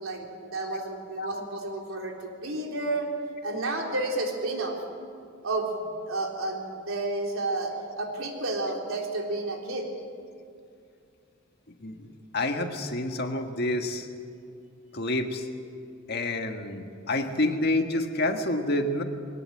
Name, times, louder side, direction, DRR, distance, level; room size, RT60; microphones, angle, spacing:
voice 1, 0.0-3.1 3.4-4.8 5.4-9.9, right 2 dB, 85° right, 1 dB, 3.5 m, -31 dB
voice 2, 11.8-14.1 14.9-15.5 16.1-19.0, left 1 dB, 50° left, 5 dB, 1.7 m, -28 dB
22.0 x 18.5 x 7.8 m, 2.4 s
head